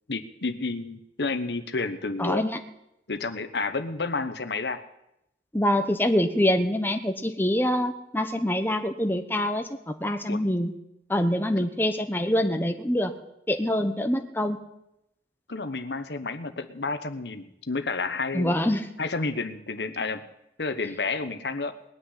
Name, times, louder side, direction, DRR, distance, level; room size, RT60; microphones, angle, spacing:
voice 1, 0.1-2.4 3.1-4.8 10.3-10.4 15.5-18.5 19.0-20.2 20.6-21.7, left 3 dB, 70° left, 10 dB, 1.1 m, -30 dB
voice 2, 2.2-2.6 5.5-10.7 11.1-13.1 13.5-14.6 18.3-18.8, left 1 dB, 10° left, 6 dB, 1.1 m, -25 dB
20.0 x 6.6 x 9.8 m, 0.83 s
head